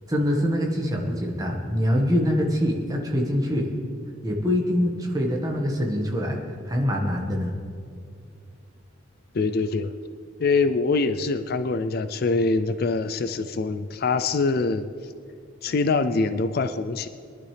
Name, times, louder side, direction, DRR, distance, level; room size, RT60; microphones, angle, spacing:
voice 1, 0.1-3.8 4.2-6.4 6.6-7.5, equal, 20° right, 0 dB, 1.5 m, -24 dB
voice 2, 9.3-9.9 10.4-14.9 15.6-17.1, left 3 dB, 50° left, 10 dB, 0.4 m, -24 dB
22.0 x 11.0 x 3.4 m, 2.3 s
head